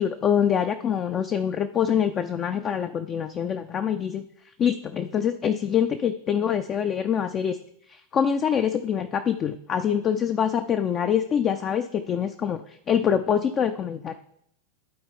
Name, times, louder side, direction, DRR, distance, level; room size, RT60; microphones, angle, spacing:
voice 1, 0.0-4.3 4.6-7.6 7.9-14.2, left 8 dB, 30° left, 8 dB, 0.4 m, -25 dB
11.5 x 4.3 x 3.6 m, 0.72 s
figure-of-eight pair, 90°, 0 cm